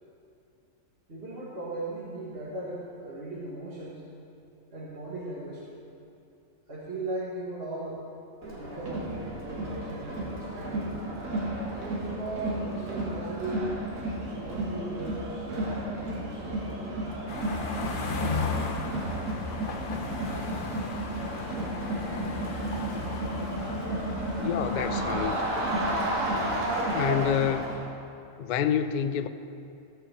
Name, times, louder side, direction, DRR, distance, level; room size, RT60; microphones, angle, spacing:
voice 1, 1.1-4.1 4.7-5.8 6.7-8.0 8.5-11.0 11.8-13.8 14.3-17.0, right 1 dB, 50° right, -7 dB, 1.8 m, -38 dB
Crowd, 8.4-27.8, right 1 dB, 85° right, 2.1 m, -32 dB
sound 1, 17.3-27.5, left 4 dB, 45° left, 0.9 m, -36 dB
voice 2, 24.4-25.4 26.9-27.9 28.4-29.3, left 8 dB, 80° left, 10 dB, 0.4 m, -28 dB
15.5 x 5.5 x 6.6 m, 2.6 s
omnidirectional pair, 1.4 m